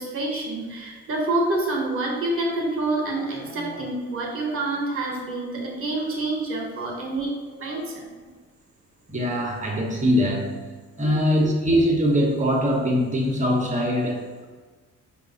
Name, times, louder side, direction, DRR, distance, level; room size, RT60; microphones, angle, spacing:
voice 1, 0.0-8.1 11.0-11.6, right 2 dB, 45° right, -1 dB, 1.3 m, -27 dB
voice 2, 9.1-10.6 11.0-14.5, equal, 25° right, 0 dB, 1.0 m, -22 dB
4.7 x 2.4 x 3.9 m, 1.4 s
cardioid pair, 90°, 30 cm